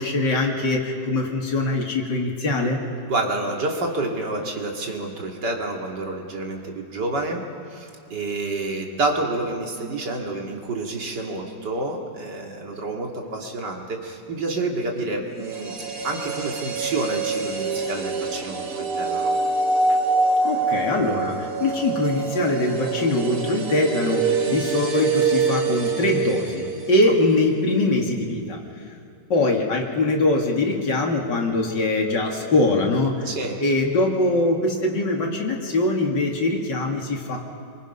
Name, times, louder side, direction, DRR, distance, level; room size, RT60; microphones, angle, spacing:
voice 1, 0.0-2.8 20.4-28.6 29.3-33.3 33.6-37.4, left 2 dB, 80° left, 1 dB, 3.0 m, -22 dB
voice 2, 3.1-19.4 19.9-20.0 33.2-33.6, right 2 dB, 70° right, 1 dB, 2.8 m, -29 dB
sound 1, 15.3-27.4 27.7-27.8, right 4 dB, 50° right, 1.7 m, -25 dB
26.5 x 24.0 x 5.6 m, 2.6 s
omnidirectional pair, 1.9 m